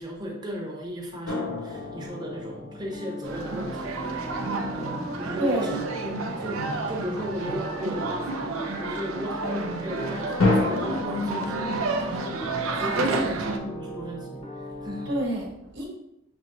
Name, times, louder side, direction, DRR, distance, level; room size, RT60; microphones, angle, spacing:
voice 1, 0.0-4.2 4.7-12.4 12.7-15.2, left 1 dB, 20° right, -1 dB, 0.8 m, -36 dB
sound 1, 1.2-3.3 10.4-11.0, left 2 dB, 80° left, 1.4 m, -26 dB
sound 2, 1.7-15.2, equal, 30° left, 0.7 m, -39 dB
sound 3, 3.2-13.6, right 3 dB, 85° right, 0.6 m, -31 dB
voice 2, 5.4-5.8 13.0-13.4 15.1-15.8, right 1 dB, 55° right, -4 dB, 1.1 m, -28 dB
6.3 x 3.1 x 2.6 m, 0.81 s
head